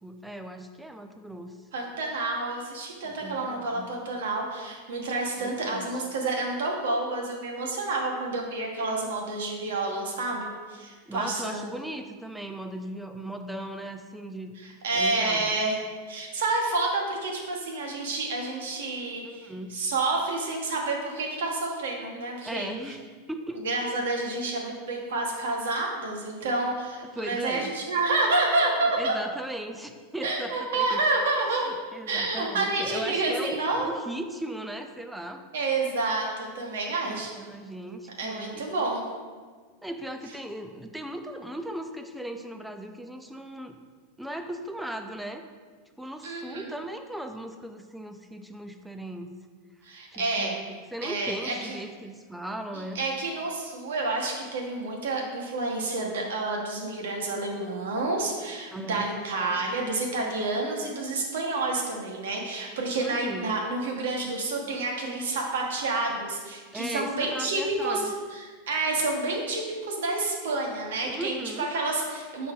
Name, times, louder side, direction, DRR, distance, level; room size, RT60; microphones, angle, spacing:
voice 1, 0.0-1.6 3.0-3.9 5.4-6.0 11.1-14.5 14.9-15.6 19.2-19.7 22.4-23.0 23.3-23.7 27.0-27.7 29.0-31.0 31.7-35.4 37.0-38.6 39.8-43.7 44.2-45.4 46.0-49.3 50.1-53.0 58.7-59.7 63.0-63.6 66.7-68.1 71.0-71.7, right 1 dB, 5° right, 6 dB, 0.3 m, -37 dB
voice 2, 1.7-11.7 14.6-15.8 16.1-22.7 23.6-29.1 30.2-31.8 32.1-33.9 35.5-37.3 38.2-39.0 46.2-46.7 49.8-50.5 51.0-51.8 52.9-68.0 68.3-72.5, right 2 dB, 90° right, 0 dB, 1.3 m, -29 dB
6.7 x 4.1 x 3.7 m, 1.5 s
supercardioid pair, 160°, 0 cm